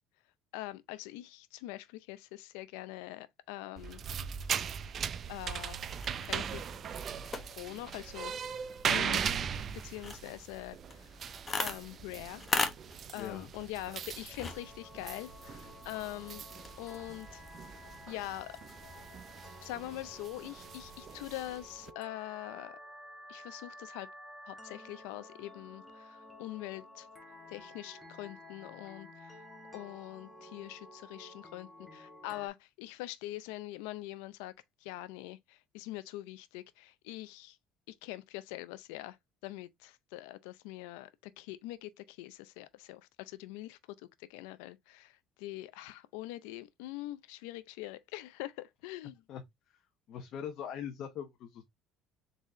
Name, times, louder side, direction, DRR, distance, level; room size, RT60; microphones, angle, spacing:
voice 1, 0.5-4.0 5.3-5.8 6.3-6.6 7.6-8.3 8.6-9.3 9.8-11.2 11.6-12.4 13.1-16.4 16.8-17.4 18.1-18.6 19.6-22.8 23.3-24.1 24.4-27.1 27.5-29.4 29.7-34.5 34.8-37.6 37.9-39.2 39.4-49.2, left 16 dB, 90° left, 0.5 m, -43 dB
sound 1, 3.8-21.9, right 7 dB, 45° right, 0.5 m, -39 dB
sound 2, 5.8-19.2, left 4 dB, 25° left, 1.1 m, -42 dB
voice 2, 13.2-13.5 49.3-49.4 50.1-51.6, left 8 dB, 60° left, 0.9 m, -41 dB
sound 3, 14.4-32.5, left 1 dB, 10° left, 1.6 m, -52 dB
4.0 x 3.6 x 3.0 m
supercardioid pair, 105°, 0 cm